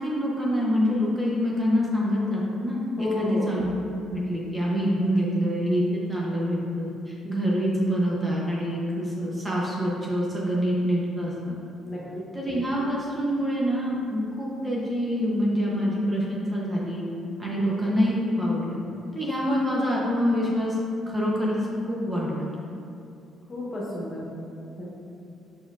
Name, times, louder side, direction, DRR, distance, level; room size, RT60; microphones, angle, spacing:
voice 1, 0.0-3.7 4.1-11.6 12.3-17.0 17.4-18.8 19.1-20.8 21.1-22.5, equal, 20° right, -5 dB, 0.6 m, -26 dB
voice 2, 3.0-3.5 11.8-12.0 23.5-24.3 24.8-24.9, left 2 dB, 30° left, -6 dB, 1.1 m, -31 dB
5.1 x 4.3 x 2.3 m, 2.6 s
cardioid pair, 125°, 0 cm